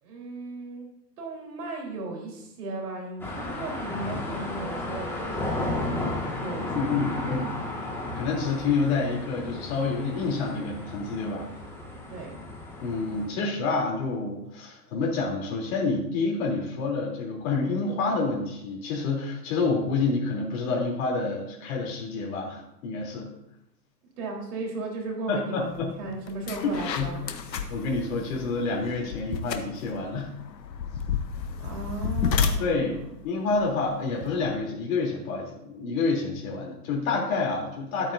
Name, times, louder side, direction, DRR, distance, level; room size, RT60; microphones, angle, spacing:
voice 1, 0.0-0.9 1.2-5.5 5.8-6.9 7.2-7.4 12.1-12.4 24.2-27.6 31.6-32.9, right 3 dB, 65° right, 0 dB, 3.9 m, -36 dB
sound 1, 3.2-13.3, left 2 dB, 5° left, 1.8 m, -34 dB
voice 2, 3.9-4.4 6.7-7.5 8.1-11.5 12.8-23.3 25.3-25.9 26.6-27.1 27.7-30.3 32.6-38.1, left 4 dB, 55° left, -2 dB, 3.3 m, -28 dB
sound 2, 25.7-25.9 26.3-34.5, left 6 dB, 90° left, 1.1 m, -32 dB
13.5 x 8.8 x 2.6 m, 0.83 s
hypercardioid pair, 130°, 49 cm